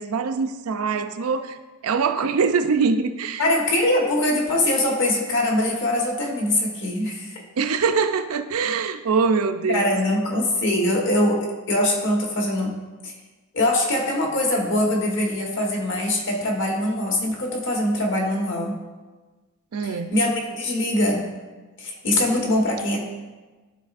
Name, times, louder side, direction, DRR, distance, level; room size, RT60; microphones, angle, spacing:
voice 1, 0.0-1.6 1.8-3.4 7.6-10.0 19.7-20.1, right 5 dB, 75° right, 9 dB, 0.5 m, -23 dB
voice 2, 3.4-7.4 9.7-12.8 13.0-13.1 13.5-18.7 19.8-21.3 21.8-23.0, left 1 dB, 55° left, 0 dB, 1.3 m, -23 dB
12.0 x 4.0 x 2.5 m, 1.2 s
head